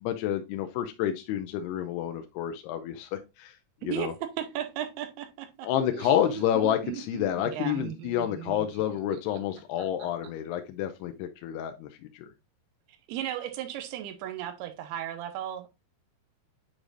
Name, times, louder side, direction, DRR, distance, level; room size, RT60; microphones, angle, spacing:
voice 1, 0.0-3.5 3.8-4.1 5.6-12.3, left 10 dB, 85° left, 2.7 m, -29 dB
voice 2, 4.4-5.7 7.5-7.8 13.1-15.8, right 11 dB, 90° right, 2.8 m, -35 dB
Laughter, 5.7-10.3, right 10 dB, 70° right, 2.2 m, -40 dB
8.9 x 4.9 x 2.5 m
omnidirectional pair, 4.6 m